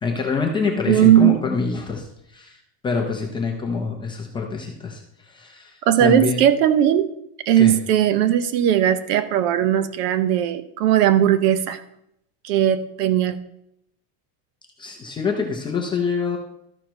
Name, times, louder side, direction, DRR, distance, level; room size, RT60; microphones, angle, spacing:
voice 1, 0.0-2.6 2.8-6.4 7.6-7.8 14.8-16.4, left 4 dB, 10° left, 0 dB, 0.4 m, -25 dB
voice 2, 0.9-1.4 5.9-7.1 7.5-11.8 12.4-13.4, right 11 dB, 75° right, 12 dB, 0.9 m, -18 dB
13.0 x 5.1 x 4.5 m, 0.77 s
cardioid pair, 175°, 47 cm